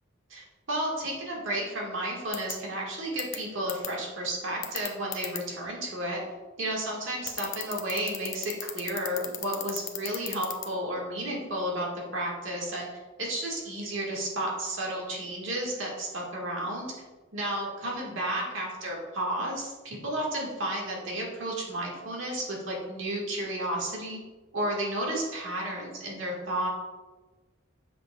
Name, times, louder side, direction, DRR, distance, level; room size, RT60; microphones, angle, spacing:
voice 1, 0.3-6.2 6.6-12.9 13.2-16.9 17.3-24.2 24.5-26.7, right 1 dB, 70° right, -2 dB, 1.6 m, -32 dB
sound 1, 2.3-2.5 3.2-3.4 3.7-3.9 4.6-5.4 7.3-10.7, left 13 dB, 65° left, 0.6 m, -33 dB
7.4 x 5.7 x 2.3 m, 1.2 s
head